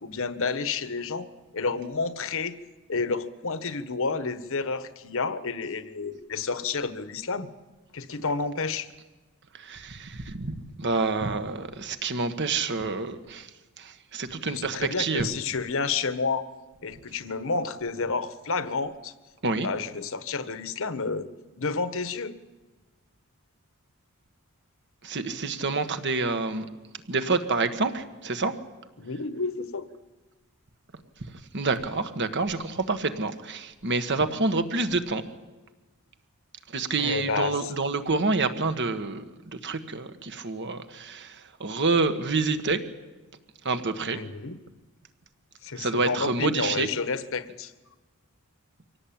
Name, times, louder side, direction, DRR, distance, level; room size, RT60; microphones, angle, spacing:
voice 1, 0.0-1.3 1.5-2.6 2.9-7.5 7.9-8.9 14.5-16.5 16.8-19.1 19.6-21.3 21.6-22.3 29.0-29.8 37.0-37.7 44.1-44.6 45.6-47.7, left 4 dB, 60° left, 13 dB, 1.3 m, -30 dB
voice 2, 9.5-13.5 13.8-15.3 19.4-19.7 25.0-26.7 27.1-28.5 31.5-35.2 36.7-42.8 43.6-44.2 45.8-46.9, right 3 dB, 50° right, 9 dB, 1.6 m, -28 dB
25.0 x 17.5 x 8.9 m, 1.2 s
head